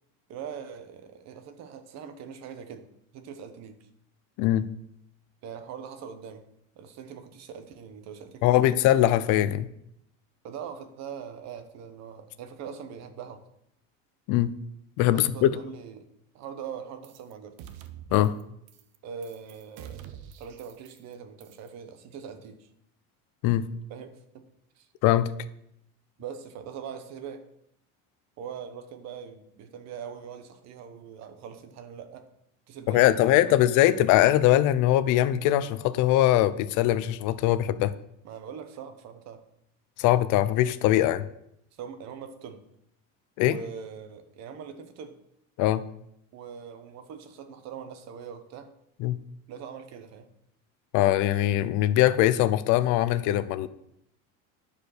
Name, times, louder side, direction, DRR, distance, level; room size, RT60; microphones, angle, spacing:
voice 1, 0.3-2.9 3.1-3.8 5.4-6.4 6.8-8.8 10.4-13.4 15.1-16.1 16.3-17.6 19.0-22.7 23.9-24.4 24.8-24.9 26.2-27.4 28.4-32.3 32.7-33.5 38.2-39.4 41.7-42.6 43.4-45.2 46.3-48.7 49.5-50.3, right 7 dB, 40° right, 9 dB, 1.1 m, -42 dB
voice 2, 8.4-9.7 14.3-14.5 15.0-15.5 18.1-18.4 23.4-23.7 25.0-25.3 32.9-37.9 40.0-41.3 43.4-43.6 45.6-45.8 49.0-49.2 50.9-53.7, left 13 dB, 50° left, 14 dB, 0.6 m, -22 dB
sound 1, 17.0-17.3 17.6-18.4 18.7-19.0 19.2-21.1 21.4-21.7, right 10 dB, 65° right, 1.0 m, -46 dB
10.5 x 5.0 x 6.5 m, 0.76 s
cardioid pair, 165°, 41 cm